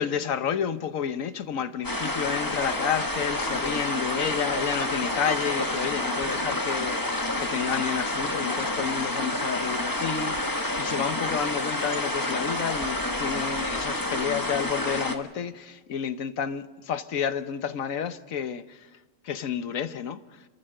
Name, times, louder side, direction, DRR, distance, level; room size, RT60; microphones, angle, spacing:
voice 1, 0.0-18.9 19.2-20.5, left 8 dB, 85° left, 1.3 m, -30 dB
sound 1, 1.8-15.2, left 1 dB, 15° left, 1.2 m, -29 dB
29.5 x 14.0 x 6.5 m
omnidirectional pair, 1.4 m